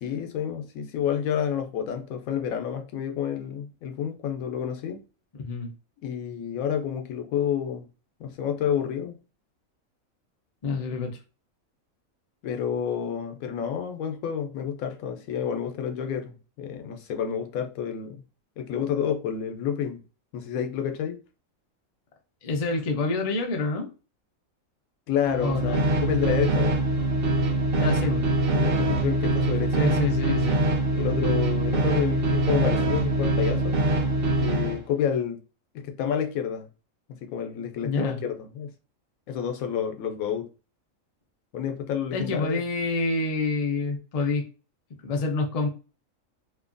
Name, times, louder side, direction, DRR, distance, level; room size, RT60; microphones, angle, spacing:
voice 1, 0.0-5.0 6.0-7.9 8.2-9.2 12.4-18.2 18.6-20.0 20.3-21.2 25.1-26.8 28.5-29.9 30.9-33.8 34.4-35.4 35.7-36.7 37.1-38.7 39.3-40.5 41.5-42.6, left 8 dB, 90° left, 1.0 m, -29 dB
voice 2, 5.4-5.7 10.6-11.2 22.4-23.9 25.4-25.8 27.7-28.2 29.8-30.7 37.8-38.2 42.1-44.4 45.0-45.7, left 3 dB, 65° left, 0.3 m, -27 dB
sound 1, 25.2-34.8, right 2 dB, 55° right, 0.7 m, -24 dB
3.1 x 2.2 x 2.4 m
omnidirectional pair, 1.4 m